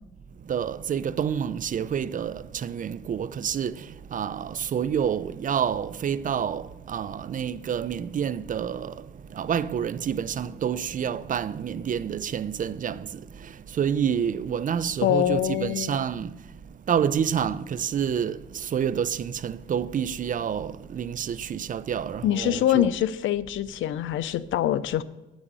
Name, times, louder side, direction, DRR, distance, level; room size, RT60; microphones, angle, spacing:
voice 1, 0.5-9.1 9.3-16.4 16.9-22.9, right 8 dB, 40° right, 0.5 m, -28 dB
voice 2, 15.0-16.0 22.2-25.0, left 12 dB, 75° left, 0.6 m, -24 dB
9.1 x 6.2 x 7.5 m
cardioid pair, 90°, 20 cm